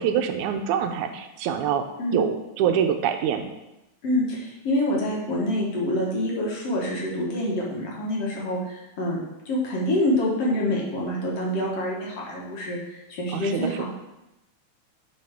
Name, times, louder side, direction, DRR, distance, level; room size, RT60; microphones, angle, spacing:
voice 1, 0.0-1.8 2.1-3.5 13.3-13.9, right 8 dB, 85° right, 7 dB, 2.0 m, -25 dB
voice 2, 4.0-9.2 9.5-13.9, left 1 dB, 60° left, -3 dB, 2.2 m, -26 dB
10.0 x 4.8 x 3.5 m, 0.94 s
omnidirectional pair, 3.4 m